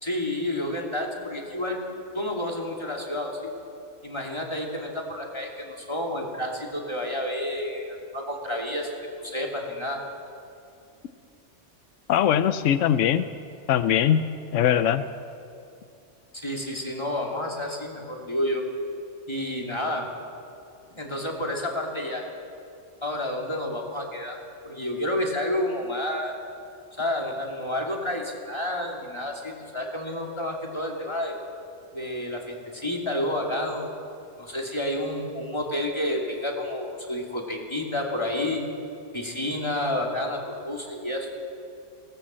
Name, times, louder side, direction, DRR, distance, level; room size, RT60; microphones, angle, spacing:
voice 1, 0.0-1.8 2.1-3.5 4.0-8.9 9.2-10.0 16.4-18.6 19.3-20.1 20.9-22.2 23.0-24.4 24.6-26.4 27.0-31.4 31.9-33.9 34.4-38.6 39.1-41.3, left 1 dB, 20° left, -1 dB, 2.7 m, -30 dB
voice 2, 12.1-13.3 13.7-14.2 14.5-15.0, left 9 dB, 85° left, 12 dB, 1.0 m, -21 dB
18.5 x 18.5 x 7.6 m, 2.5 s
omnidirectional pair, 1.3 m